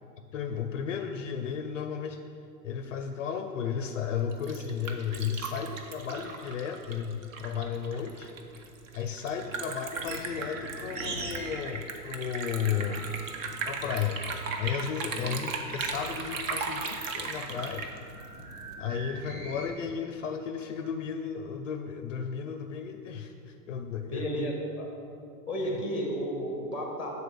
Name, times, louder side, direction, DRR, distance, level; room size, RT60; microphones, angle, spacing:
voice 1, 0.3-2.2 2.6-8.3 8.9-13.1 13.7-14.2 14.6-17.8 18.8-24.5 25.6-25.8, left 7 dB, 50° left, 6 dB, 0.5 m, -34 dB
Liquid, 4.2-18.7, right 4 dB, 50° right, 0.9 m, -37 dB
sound 1, 9.9-11.7 11.9-15.0 15.5-19.7, right 2 dB, 75° right, 1.4 m, -43 dB
voice 2, 24.1-24.9 25.5-27.1, equal, 5° right, 0 dB, 0.7 m, -33 dB
6.9 x 4.2 x 6.6 m, 2.5 s
hypercardioid pair, 155°, 50 cm